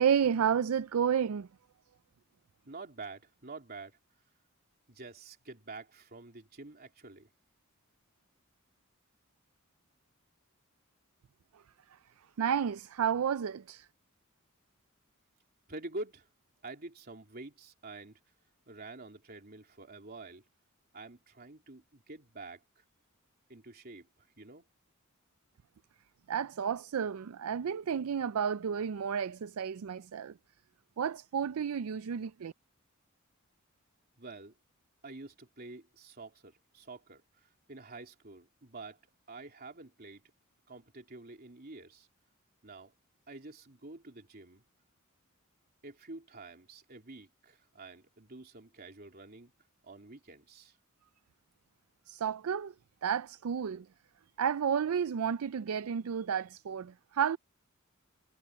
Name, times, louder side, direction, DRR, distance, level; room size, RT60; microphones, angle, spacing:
voice 1, 0.0-1.5 12.4-13.9 26.3-30.4 31.0-32.5 52.1-52.7 53.0-53.9 54.4-57.4, right 7 dB, 80° right, 0.4 m, -31 dB
voice 2, 2.7-4.0 4.9-7.3 15.7-16.3 16.6-18.2 18.7-20.4 20.9-22.8 23.5-24.1 24.4-24.6 34.2-34.5 35.0-39.0 39.3-40.2 40.7-42.1 42.6-42.9 43.3-44.6 45.8-49.5 49.8-50.8, right 3 dB, 45° right, 3.2 m, -47 dB
head